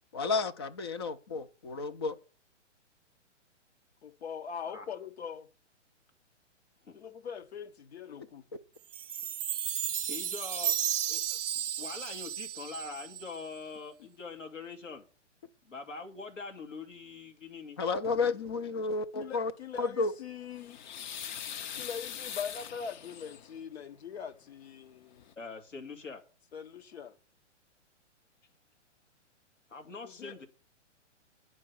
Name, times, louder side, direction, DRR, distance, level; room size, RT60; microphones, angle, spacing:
voice 1, 0.1-2.2 17.8-19.5 19.8-20.1, left 4 dB, 25° left, 0.4 m, -31 dB
voice 2, 4.0-5.5 6.9-8.4 19.1-20.8 21.8-25.3 26.5-27.1 30.0-30.4, left 7 dB, 60° left, 1.3 m, -42 dB
Chime, 8.9-13.4, right 10 dB, 80° right, 0.5 m, -33 dB
voice 3, 10.1-10.8 11.1-11.4 11.8-15.0 15.6-17.8 25.4-26.2 29.7-30.5, left 4 dB, 85° left, 2.5 m, -43 dB
sound 1, 20.3-23.6 24.8-24.9 25.2-25.3, left 9 dB, 40° left, 0.7 m, -42 dB
9.5 x 5.2 x 6.8 m
figure-of-eight pair, 125°, 36 cm